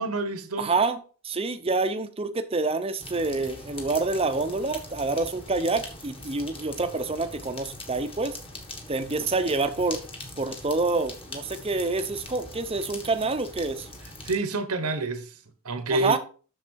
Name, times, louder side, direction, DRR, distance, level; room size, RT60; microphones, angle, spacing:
voice 1, 0.0-0.7 14.2-15.3 15.6-16.2, right 2 dB, 90° right, 1.2 m, -28 dB
voice 2, 0.6-8.4 8.9-10.0 10.4-13.9 15.9-16.2, right 3 dB, 25° right, 0.7 m, -27 dB
sound 1, 3.0-14.3, left 2 dB, 25° left, 1.6 m, -42 dB
7.5 x 6.4 x 4.6 m
head